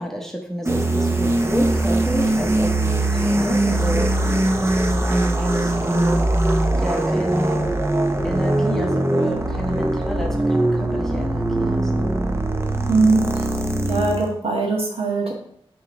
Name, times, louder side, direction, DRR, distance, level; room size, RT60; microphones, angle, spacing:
voice 1, 0.0-4.1 4.6-6.2 6.8-7.6 8.2-11.9, equal, 5° left, 0 dB, 0.9 m, -29 dB
sound 1, 0.7-14.3, right 1 dB, 25° right, 0.7 m, -21 dB
voice 2, 12.9-13.2 13.9-15.3, right 3 dB, 65° right, -1 dB, 1.5 m, -20 dB
9.0 x 3.1 x 3.6 m, 0.69 s
wide cardioid pair, 100°, 11 cm